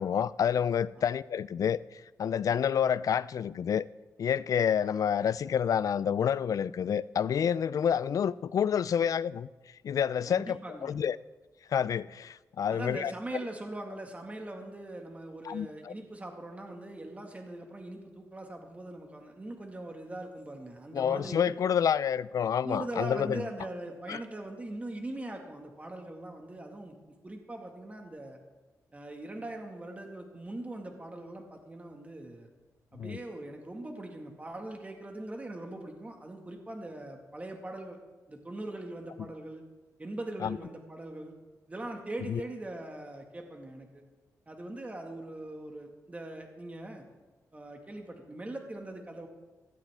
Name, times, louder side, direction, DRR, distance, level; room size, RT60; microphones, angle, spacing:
voice 1, 0.0-3.8 4.2-9.5 9.8-11.2 11.7-13.1 15.5-15.9 20.9-23.4 24.1-24.2 33.0-33.2 40.4-40.6 42.3-42.4, left 8 dB, 65° left, 0.3 m, -28 dB
voice 2, 10.3-10.9 12.7-21.5 22.6-26.9 27.2-28.4 28.9-32.5 32.9-38.0 38.3-39.6 40.0-41.3 41.7-44.0 44.5-47.0 47.5-49.3, right 1 dB, 20° right, 1.8 m, -41 dB
16.5 x 13.0 x 3.6 m
cardioid pair, 95°, 6 cm